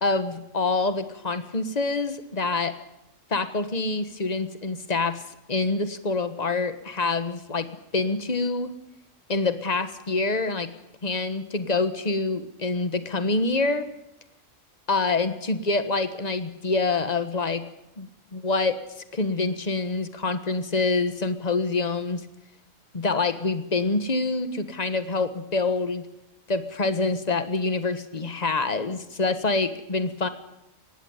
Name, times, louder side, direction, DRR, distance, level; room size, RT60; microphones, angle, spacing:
voice 1, 0.0-2.7 3.3-5.2 5.5-7.7 7.9-8.7 9.3-10.7 11.0-13.9 14.9-17.6 18.0-18.8 19.1-22.2 22.9-26.0 26.5-30.3, left 3 dB, 35° left, 10 dB, 1.5 m, -26 dB
19.5 x 16.0 x 9.6 m, 0.88 s
omnidirectional pair, 1.3 m